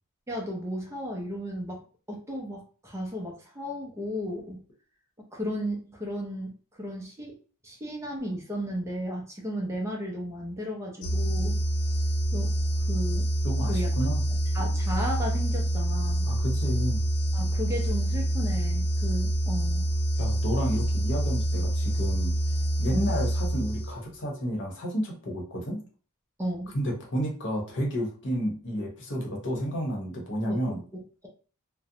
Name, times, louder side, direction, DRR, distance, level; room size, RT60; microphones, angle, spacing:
voice 1, 0.3-4.6 5.3-7.3 7.6-11.6 12.3-12.5 12.9-13.3 13.7-13.9 14.5-16.3 17.3-19.9 22.9-23.2 26.4-26.7 30.5-30.6, equal, 15° right, 0 dB, 0.5 m, -34 dB
sound 1, 11.0-24.1, right 1 dB, 90° left, 0.5 m, -26 dB
voice 2, 13.4-14.2 16.2-17.0 20.2-22.3 22.8-25.8 26.7-30.8, equal, 55° left, 0 dB, 0.8 m, -31 dB
2.6 x 2.0 x 2.7 m, 0.38 s
head